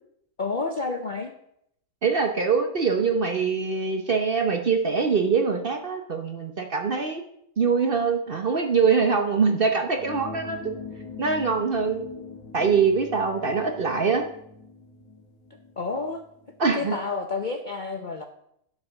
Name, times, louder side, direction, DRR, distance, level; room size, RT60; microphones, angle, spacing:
voice 1, 0.4-1.3 15.8-16.2 16.7-18.3, left 4 dB, 45° left, 5 dB, 0.6 m, -29 dB
voice 2, 2.0-7.2 7.6-10.7 11.2-12.0 12.5-14.2 16.6-17.0, right 5 dB, 45° right, 5 dB, 0.8 m, -23 dB
sound 1, 10.0-16.8, left 4 dB, 80° left, 1.9 m, -42 dB
11.5 x 4.9 x 6.4 m, 0.75 s
omnidirectional pair, 1.7 m